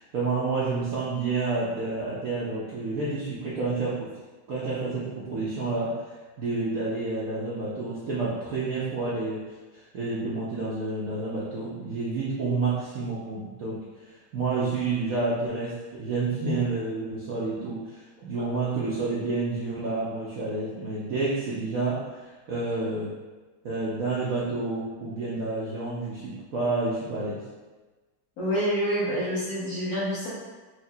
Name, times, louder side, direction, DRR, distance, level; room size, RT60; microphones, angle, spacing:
voice 1, 0.0-4.1 4.5-6.0 6.4-9.4 9.7-13.8 14.3-23.1 23.6-27.4, right 3 dB, 65° right, -8 dB, 0.9 m, -29 dB
voice 2, 28.4-30.3, equal, 50° left, -8 dB, 1.4 m, -27 dB
4.6 x 2.8 x 2.7 m, 1.3 s
omnidirectional pair, 2.2 m